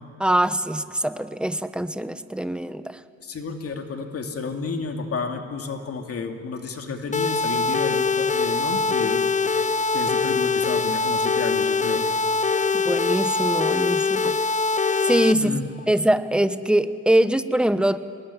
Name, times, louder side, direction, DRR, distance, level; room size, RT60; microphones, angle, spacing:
voice 1, 0.2-3.0 12.7-14.4 15.0-15.6 15.9-18.0, right 1 dB, 5° right, 12 dB, 1.0 m, -23 dB
voice 2, 3.2-9.2 9.9-12.1 15.4-15.7, left 4 dB, 50° left, 4 dB, 2.6 m, -31 dB
sound 1, 7.1-15.3, left 4 dB, 25° left, 0.7 m, -23 dB
26.0 x 20.5 x 9.9 m, 2.4 s
cardioid pair, 90°, 30 cm